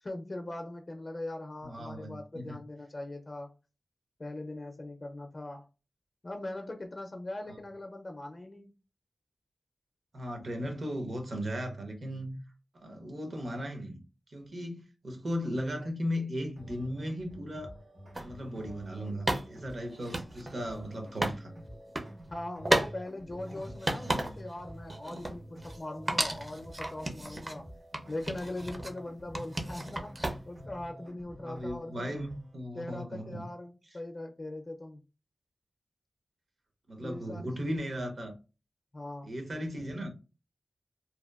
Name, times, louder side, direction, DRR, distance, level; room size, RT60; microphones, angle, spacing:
voice 1, 0.0-3.5 4.2-5.7 6.2-8.7 22.3-27.7 28.1-30.2 30.5-32.1 32.7-35.0 37.0-37.5 38.9-39.3, left 1 dB, 45° left, 0.4 m, -40 dB
voice 2, 1.6-2.6 7.5-7.6 10.1-12.4 12.8-14.0 14.3-17.8 18.2-21.5 23.5-23.8 24.0-24.3 31.4-33.4 36.9-38.3 39.2-40.1, equal, 65° right, 0.8 m, -37 dB
sound 1, 16.6-32.6, equal, 85° right, 1.3 m, -49 dB
sound 2, 18.1-18.3 19.3-21.4 21.7-22.1 22.6-22.9 23.3-24.6 24.9-25.8 26.1-27.6 27.9-29.0 29.3-30.6, right 1 dB, 30° right, 0.5 m, -33 dB
2.8 x 2.2 x 2.3 m
wide cardioid pair, 65°, 0 cm